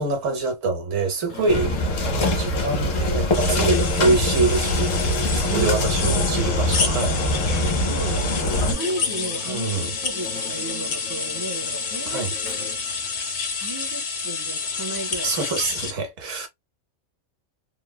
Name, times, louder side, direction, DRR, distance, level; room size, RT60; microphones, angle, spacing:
voice 1, 0.0-5.0 5.3-7.2 9.5-9.9 12.1-12.3 15.2-16.5, right 3 dB, 80° right, 1.3 m, -25 dB
sound 1, 1.3-13.6, left 4 dB, 70° left, 1.3 m, -39 dB
sound 2, 1.5-8.7, left 1 dB, 90° left, 1.3 m, -23 dB
sound 3, 3.3-15.9, left 5 dB, 50° left, 0.6 m, -29 dB
voice 2, 7.9-9.7 10.0-12.4 13.5-15.3, right 1 dB, 25° right, 0.5 m, -34 dB
3.2 x 2.1 x 2.2 m
omnidirectional pair, 1.3 m